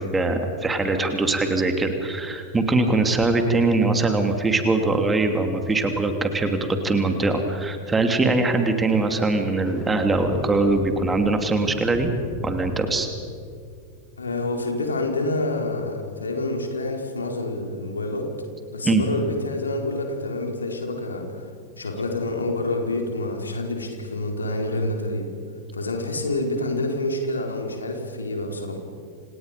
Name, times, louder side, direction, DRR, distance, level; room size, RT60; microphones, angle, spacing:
voice 1, 0.0-12.1 12.4-13.1 18.8-19.0, right 3 dB, 15° right, 6 dB, 2.9 m, -22 dB
sound 1, 9.6-14.8, left 1 dB, 15° left, 6.3 m, -38 dB
voice 2, 14.2-18.3 18.7-21.4 21.8-25.3 25.7-28.8, left 2 dB, 75° left, 2 dB, 4.4 m, -27 dB
29.0 x 28.0 x 5.3 m, 2.2 s
figure-of-eight pair, 90°, 0 cm